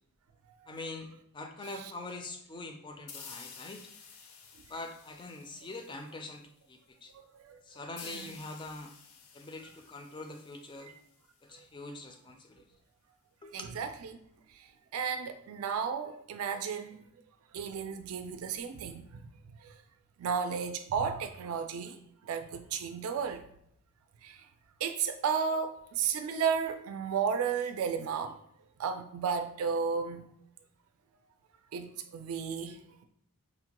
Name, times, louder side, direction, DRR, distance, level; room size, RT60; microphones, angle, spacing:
voice 1, 0.7-3.9 4.7-7.1 7.6-8.9 9.3-10.9 11.4-12.7 13.4-13.7, left 2 dB, 20° left, 0.3 m, -44 dB
sound 1, 3.1-6.5 8.0-11.5, left 6 dB, 75° left, 0.5 m, -52 dB
voice 2, 7.1-7.6 8.0-8.3 10.9-11.0 13.5-14.2 14.5-14.7 14.9-17.0 17.5-19.3 19.6-19.8 20.2-22.0 22.2-23.5 24.2-24.4 24.8-28.4 28.8-30.3 31.7-33.1, right 6 dB, 80° right, 0.3 m, -33 dB
5.0 x 2.2 x 2.9 m
head